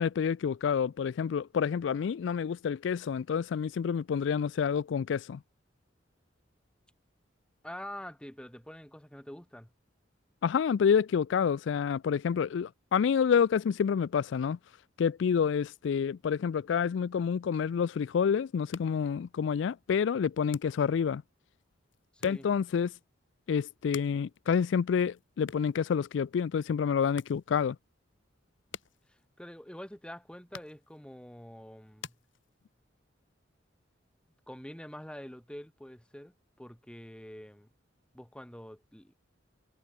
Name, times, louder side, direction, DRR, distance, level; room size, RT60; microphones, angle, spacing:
voice 1, 0.0-5.4 10.4-14.6 15.0-21.2 22.2-22.9 23.5-27.8, left 7 dB, 70° left, 0.3 m, -28 dB
voice 2, 7.6-9.7 22.1-22.5 29.4-32.1 34.5-36.3 36.6-37.7 38.1-39.2, equal, 5° left, 1.6 m, -46 dB
sound 1, 18.5-33.0, left 6 dB, 85° left, 1.9 m, -52 dB
head